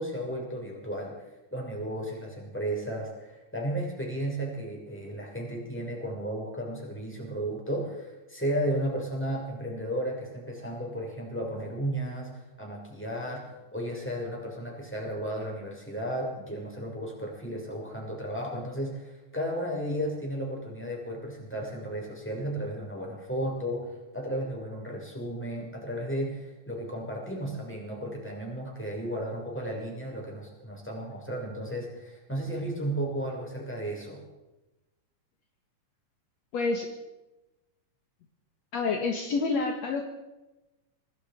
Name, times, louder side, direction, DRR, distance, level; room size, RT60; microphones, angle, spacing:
voice 1, 0.0-34.2, right 1 dB, 5° left, -2 dB, 6.3 m, -34 dB
voice 2, 36.5-36.9 38.7-40.0, left 4 dB, 60° left, 2 dB, 2.7 m, -28 dB
26.0 x 19.0 x 5.3 m, 1.1 s
omnidirectional pair, 3.6 m